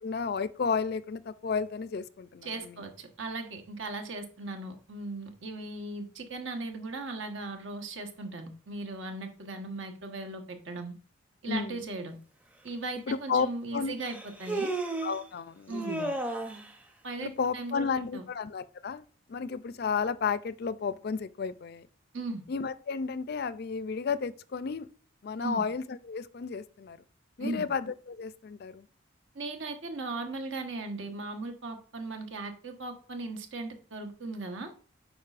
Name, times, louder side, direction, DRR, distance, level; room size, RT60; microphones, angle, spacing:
voice 1, 0.0-2.8 11.5-11.9 13.1-14.0 15.0-16.1 17.2-21.9 22.5-24.9 25.2-27.0 27.4-28.9, left 5 dB, 50° left, 0.4 m, -33 dB
voice 2, 2.4-10.9 11.4-12.2 12.6-14.7 15.7-16.0 17.0-17.9 18.1-18.2 22.1-22.4 25.4-25.6 27.4-27.7 29.3-34.7, right 2 dB, 70° right, 1.2 m, -38 dB
Human voice, 12.7-12.8 14.0-15.2 15.7-16.7, right 2 dB, 5° right, 0.6 m, -33 dB
9.4 x 5.1 x 2.5 m
head